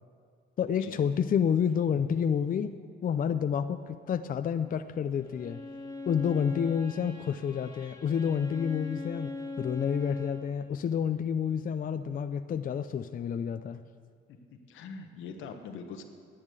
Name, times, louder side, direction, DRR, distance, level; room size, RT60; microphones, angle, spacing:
voice 1, 0.6-2.7 3.0-5.6 6.1-13.8, left 7 dB, 45° left, 9 dB, 0.5 m, -29 dB
Bowed string instrument, 5.2-10.6, left 3 dB, 15° left, 1.8 m, -41 dB
voice 2, 14.7-16.0, left 5 dB, 85° left, 5 dB, 1.3 m, -42 dB
10.5 x 8.7 x 8.2 m, 2.2 s
cardioid pair, 90°, 20 cm